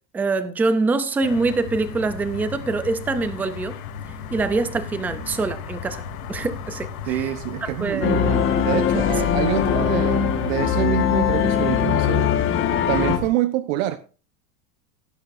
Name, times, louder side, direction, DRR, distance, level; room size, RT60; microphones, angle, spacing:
voice 1, 0.1-3.7 4.3-6.0 6.3-7.3 7.6-8.1, right 3 dB, 5° right, 0.4 m, -24 dB
sound 1, 1.2-13.3, left 5 dB, 70° left, 4.9 m, -35 dB
voice 2, 7.1-12.3 12.9-14.0, right 13 dB, 60° right, 1.1 m, -26 dB
sound 2, 8.0-13.2, left 8 dB, 30° left, 1.7 m, -21 dB
17.5 x 10.0 x 2.6 m
supercardioid pair, 160°, 44 cm